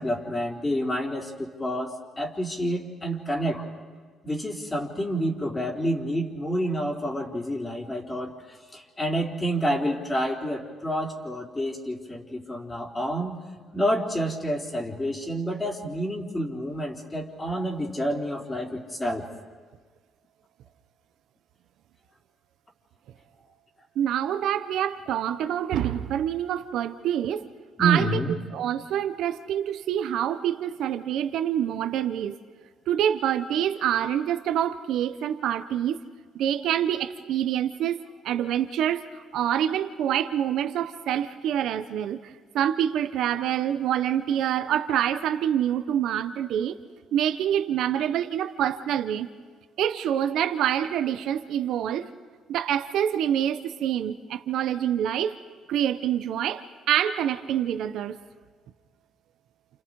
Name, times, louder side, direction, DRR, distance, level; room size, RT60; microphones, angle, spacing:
voice 1, 0.0-3.7 4.2-13.3 13.7-19.2 27.8-28.3, right 1 dB, 20° left, 1 dB, 3.8 m, -28 dB
voice 2, 24.0-27.4 27.8-28.2 28.5-32.4 32.9-36.0 36.3-38.0 38.2-46.8 47.1-49.3 49.8-52.1 52.5-55.4 55.7-58.2, right 10 dB, 75° right, 9 dB, 0.9 m, -26 dB
29.0 x 29.0 x 4.8 m, 1.5 s
cardioid pair, 90°, 0 cm